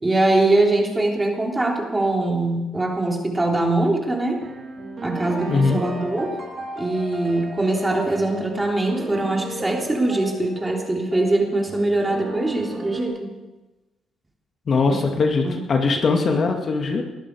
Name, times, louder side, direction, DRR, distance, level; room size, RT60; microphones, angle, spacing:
voice 1, 0.0-4.4 5.0-6.3 6.8-13.3 14.9-15.0 15.4-15.6, right 2 dB, 15° right, 0 dB, 3.6 m, -22 dB
sound 1, 4.4-13.1, right 2 dB, 45° right, 4.5 m, -35 dB
voice 2, 5.5-5.8 14.7-17.0, left 4 dB, 50° left, 3 dB, 2.2 m, -20 dB
20.5 x 12.5 x 4.8 m, 1.1 s
cardioid pair, 90°, 0 cm